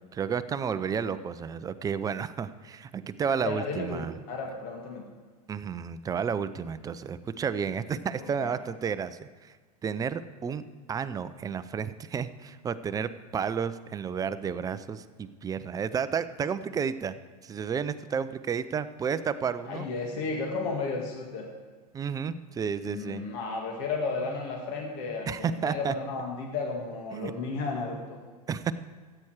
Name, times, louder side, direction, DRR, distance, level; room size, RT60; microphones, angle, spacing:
voice 1, 0.1-4.1 5.5-9.5 9.8-10.6 10.9-17.1 17.4-19.9 21.9-23.2 25.3-25.9 27.1-27.3 28.5-28.7, right 6 dB, 15° right, 13 dB, 0.5 m, -31 dB
voice 2, 3.4-5.1 8.4-8.6 19.7-21.5 22.8-28.2, left 4 dB, 50° left, 1 dB, 1.9 m, -33 dB
13.5 x 8.8 x 4.8 m, 1.4 s
hypercardioid pair, 110°, 20 cm